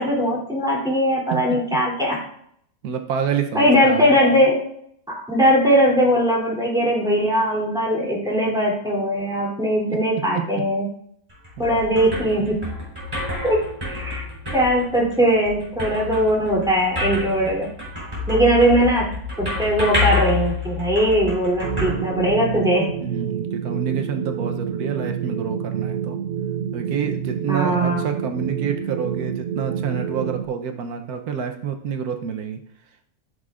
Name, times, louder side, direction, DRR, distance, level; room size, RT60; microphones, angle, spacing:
voice 1, 0.0-2.2 3.5-4.6 5.3-10.9 11.6-12.6 13.4-13.6 13.9-14.2 14.5-17.7 18.3-19.1 19.4-22.9 27.5-28.1, equal, 5° right, -4 dB, 2.9 m, -20 dB
voice 2, 2.8-4.2 9.9-10.0 10.3-10.4 11.6-11.8 12.2-12.4 23.0-26.2 26.7-32.6, right 7 dB, 90° right, 5 dB, 1.3 m, -28 dB
sound 1, 11.3-22.8, left 3 dB, 20° right, 3.6 m, -29 dB
sound 2, 21.6-30.5, right 8 dB, 70° right, 0.9 m, -28 dB
13.5 x 6.4 x 2.5 m, 0.68 s
omnidirectional pair, 1.6 m